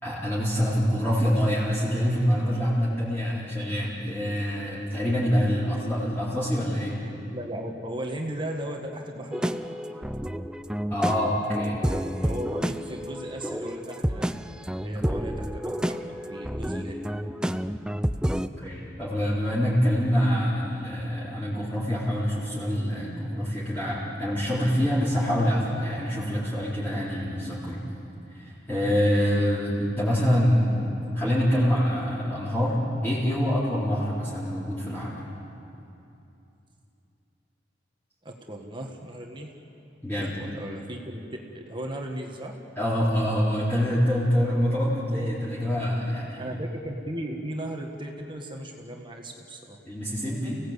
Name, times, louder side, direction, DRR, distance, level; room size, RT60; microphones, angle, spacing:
voice 1, 0.0-7.0 10.9-11.8 14.9-15.1 18.6-27.8 28.3-35.3 40.0-40.3 42.8-46.5 49.9-50.6, equal, 10° left, -10 dB, 4.1 m, -25 dB
voice 2, 7.3-9.6 12.2-14.3 14.8-17.0 38.3-39.5 40.2-42.5 46.4-49.8, right 1 dB, 25° right, 2 dB, 1.7 m, -36 dB
sound 1, 9.3-18.5, equal, 5° right, 0.5 m, -30 dB
29.5 x 17.5 x 8.4 m, 2.8 s
head